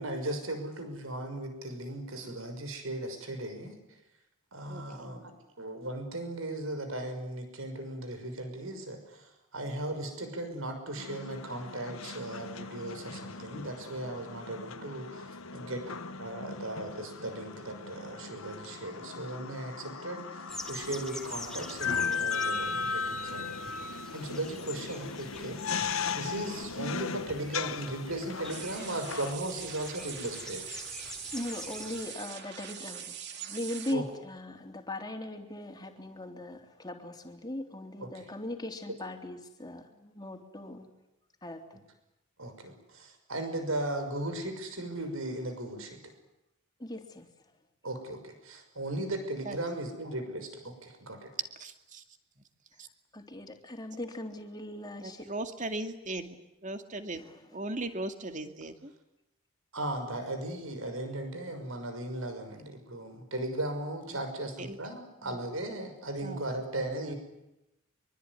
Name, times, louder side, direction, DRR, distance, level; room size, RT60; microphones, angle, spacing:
voice 1, 0.0-4.0 4.5-25.6 26.1-30.7 33.9-34.0 38.0-38.3 42.4-46.1 47.8-51.3 59.7-67.1, right 1 dB, 75° right, 7 dB, 6.1 m, -37 dB
voice 2, 4.7-5.1 10.0-10.1 49.5-49.6 51.6-52.0 52.8-52.9 55.0-56.4 56.6-57.2 57.5-58.9 64.6-64.8 65.2-65.4 66.2-66.4 67.1-67.2, right 2 dB, 35° right, 7 dB, 2.4 m, -38 dB
sound 1, 11.0-29.3, left 5 dB, 80° left, 1.3 m, -37 dB
sound 2, 20.5-32.0, left 1 dB, 5° left, 2.9 m, -47 dB
sound 3, 28.5-33.9, right 8 dB, 55° right, 3.1 m, -43 dB
voice 3, 31.3-40.9 41.4-41.8 46.8-47.3 53.1-55.3 57.3-57.4, left 1 dB, 20° left, 4 dB, 3.3 m, -39 dB
24.5 x 24.0 x 9.8 m, 0.90 s
head